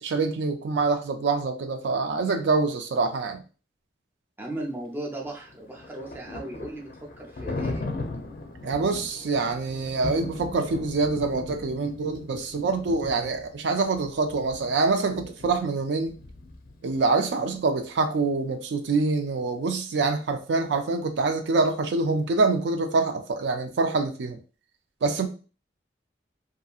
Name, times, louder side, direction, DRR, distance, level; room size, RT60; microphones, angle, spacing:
voice 1, 0.0-3.4 8.6-16.1 16.8-24.4 25.0-25.3, right 3 dB, 75° right, 0.4 m, -25 dB
voice 2, 4.4-7.9, right 1 dB, 10° right, 0.5 m, -36 dB
Thunder, 5.3-17.1, left 2 dB, 50° left, 0.4 m, -38 dB
2.7 x 2.5 x 2.3 m
head